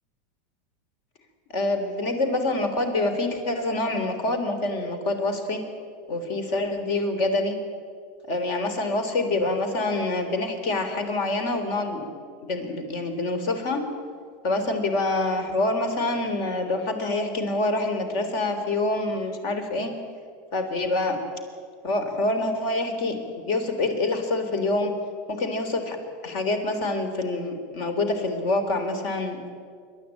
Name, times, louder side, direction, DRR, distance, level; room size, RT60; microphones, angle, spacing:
voice 1, 1.5-5.6 6.1-7.6 8.3-12.1 12.5-13.8 14.4-19.9 20.5-21.2 21.8-24.9 25.3-26.0 26.2-29.4, left 2 dB, 50° left, 7 dB, 3.4 m, -26 dB
26.0 x 12.5 x 9.0 m, 2.1 s
supercardioid pair, 160°, 0 cm